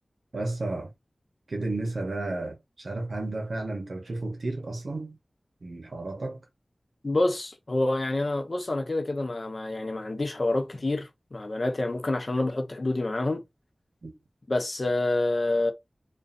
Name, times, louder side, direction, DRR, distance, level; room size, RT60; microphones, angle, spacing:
voice 1, 0.3-0.9 1.5-5.2 5.6-6.4 14.0-14.1, right 2 dB, 80° right, 0.6 m, -32 dB
voice 2, 7.0-13.4 14.5-15.7, left 2 dB, 50° left, 0.6 m, -27 dB
2.4 x 2.3 x 2.5 m
wide cardioid pair, 65°, 0 cm